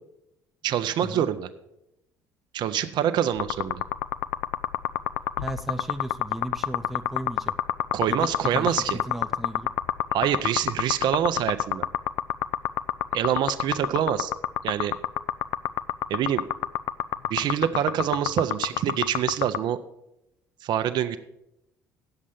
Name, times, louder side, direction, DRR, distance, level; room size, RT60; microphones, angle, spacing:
voice 1, 0.6-1.5 2.5-3.8 7.9-9.0 10.1-11.9 13.1-14.3 14.6-14.9 16.1-16.4 17.3-19.8 20.6-21.2, right 10 dB, 50° right, 11 dB, 0.6 m, -25 dB
sound 1, 3.3-19.6, left 14 dB, 65° left, 0.4 m, -26 dB
voice 2, 5.4-7.6 8.1-9.7, right 1 dB, ahead, 5 dB, 0.7 m, -35 dB
8.9 x 7.3 x 6.9 m, 0.85 s
figure-of-eight pair, 55°, 10 cm